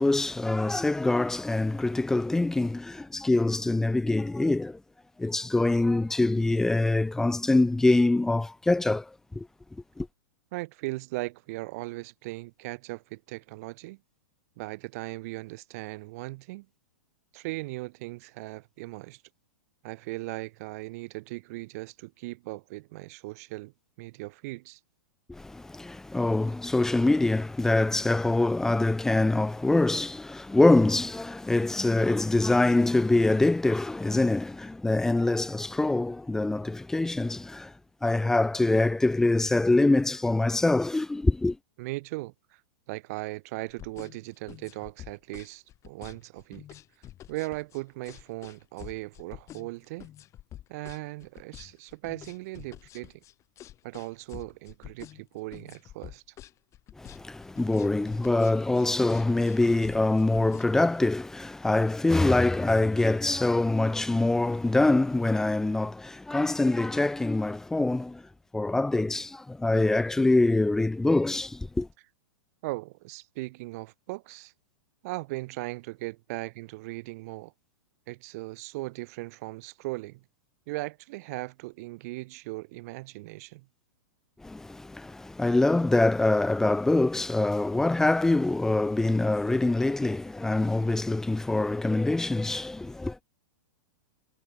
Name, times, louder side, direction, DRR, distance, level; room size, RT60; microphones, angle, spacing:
voice 1, 0.0-4.8 5.2-9.5 10.0-10.1 25.3-37.7 38.0-41.6 57.0-71.9 84.4-93.2, left 2 dB, 5° left, 0.3 m, -24 dB
voice 2, 10.5-14.0 14.6-16.7 17.3-19.2 19.8-23.7 24.0-24.8 41.8-42.6 42.9-46.6 47.3-50.1 50.7-53.2 53.8-56.2 72.6-74.5 75.0-77.5 78.1-80.2 80.7-83.7, right 22 dB, 55° right, 2.5 m, -38 dB
sound 1, 43.7-61.1, left 12 dB, 30° left, 6.6 m, -47 dB
hypercardioid pair, 125°, 10 cm